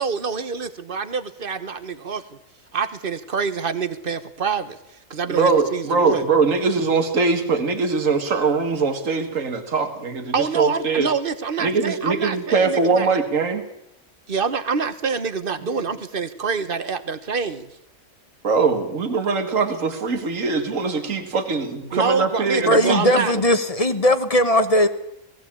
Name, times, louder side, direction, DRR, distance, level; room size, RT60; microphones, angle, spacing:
voice 1, 0.0-2.2 2.7-4.8 5.1-6.2 10.3-13.1 14.3-17.7 21.9-23.3, right 5 dB, 40° right, 13 dB, 1.3 m, -26 dB
voice 2, 5.3-11.1 11.6-13.6 15.6-15.7 18.4-23.3, right 4 dB, 65° right, 6 dB, 2.3 m, -22 dB
voice 3, 22.6-24.9, left 1 dB, 25° left, 10 dB, 1.3 m, -18 dB
18.5 x 16.5 x 8.6 m, 0.81 s
omnidirectional pair, 1.5 m